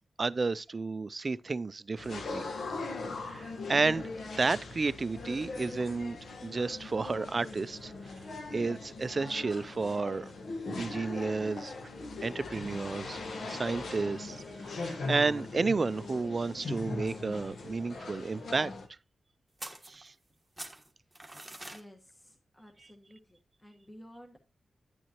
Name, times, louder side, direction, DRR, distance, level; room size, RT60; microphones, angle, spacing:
voice 1, 0.2-2.4 3.2-6.2 6.4-7.9 8.5-10.3 10.8-11.7 12.2-13.2 13.5-18.7 19.9-20.1, right 4 dB, 40° right, 0.4 m, -32 dB
sound 1, 2.0-18.9, left 3 dB, 75° left, 1.3 m, -40 dB
sound 2, 19.6-20.3 20.6-21.8, right 1 dB, 10° right, 1.4 m, -44 dB
voice 2, 21.5-24.4, equal, 15° left, 1.4 m, -54 dB
9.9 x 9.2 x 2.9 m
wide cardioid pair, 95°, 0 cm